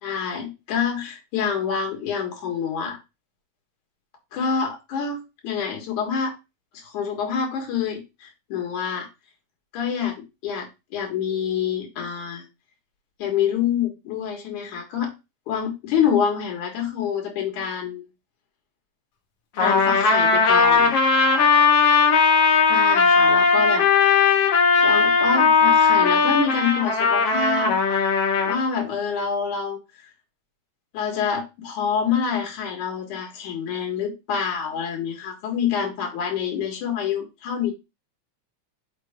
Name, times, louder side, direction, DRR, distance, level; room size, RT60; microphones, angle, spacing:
voice 1, 0.0-3.0 4.3-6.3 6.7-9.1 9.7-12.5 13.2-15.1 15.5-18.0 19.6-20.9 22.7-23.9 24.8-27.8 28.5-29.8 30.9-37.7, left 7 dB, 85° left, 1 dB, 3.2 m, -26 dB
Trumpet, 19.6-28.6, left 5 dB, 60° left, 2.1 m, -18 dB
6.6 x 4.5 x 3.5 m, 0.25 s
omnidirectional pair, 3.4 m